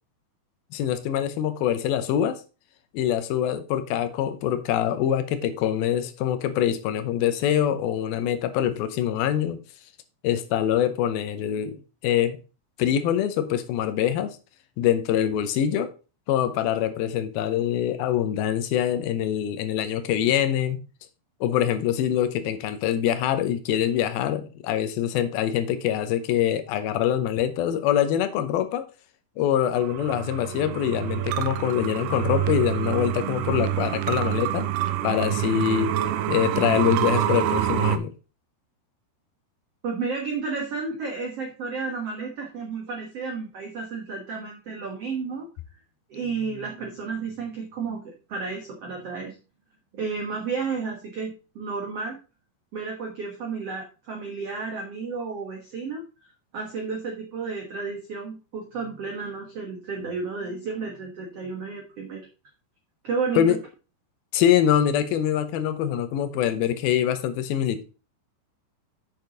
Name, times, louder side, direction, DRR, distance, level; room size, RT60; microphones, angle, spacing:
voice 1, 0.7-2.4 2.9-9.6 10.2-12.4 12.8-14.4 14.8-15.9 16.3-20.8 21.4-28.8 29.4-34.7 35.0-35.9 36.3-38.1 63.4-63.6 64.3-67.8, left 10 dB, 75° left, 2.5 m, -24 dB
sound 1, 29.8-38.0, right 11 dB, 85° right, 2.6 m, -26 dB
voice 2, 39.8-45.5 46.1-49.4 49.9-52.2 52.7-56.0 56.5-62.3 63.0-63.4, right 4 dB, 65° right, 1.5 m, -32 dB
8.7 x 6.2 x 3.8 m
omnidirectional pair, 4.7 m